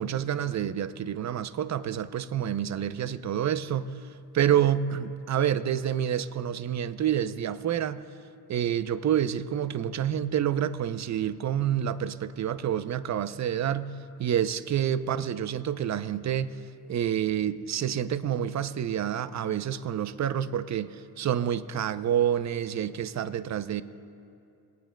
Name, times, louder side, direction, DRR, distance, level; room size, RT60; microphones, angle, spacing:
voice 1, 0.0-4.0 4.3-8.0 8.5-13.9 14.2-16.6 16.9-23.8, right 10 dB, 40° right, 14 dB, 0.6 m, -28 dB
27.0 x 9.2 x 2.3 m, 2.5 s
supercardioid pair, 55°, 42 cm